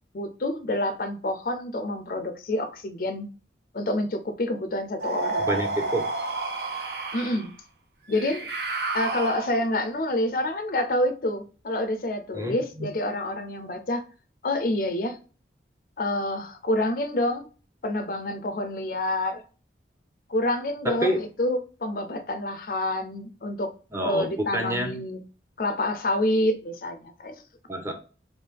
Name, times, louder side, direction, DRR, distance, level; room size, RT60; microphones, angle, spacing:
voice 1, 0.1-3.3 3.7-5.5 7.1-7.5 8.1-8.5 8.9-14.0 14.4-15.2 16.0-17.5 17.8-19.4 20.3-23.7 24.0-25.2 25.6-27.3, left 1 dB, 50° left, 0.5 m, -27 dB
sound 1, 5.0-7.5 8.1-9.8, right 3 dB, 60° right, 0.7 m, -30 dB
voice 2, 5.4-6.0 12.3-12.9 20.8-21.2 23.9-24.9 27.7-27.9, right 1 dB, 15° right, 0.7 m, -28 dB
3.4 x 2.7 x 4.5 m
head